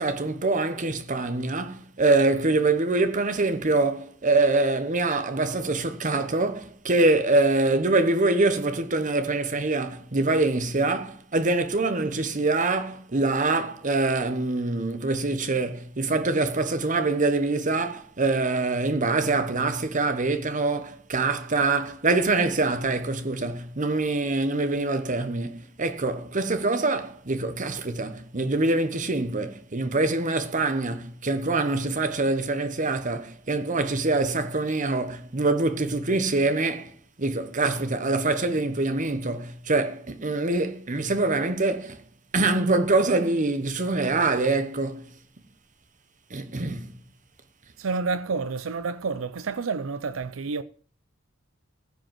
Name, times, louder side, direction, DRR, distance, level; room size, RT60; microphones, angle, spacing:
voice 1, 0.0-42.0 42.3-45.1 46.3-46.9, right 2 dB, 40° right, 1.1 m, -24 dB
voice 2, 47.8-50.6, right 4 dB, 80° right, 0.6 m, -29 dB
15.5 x 5.4 x 7.6 m
head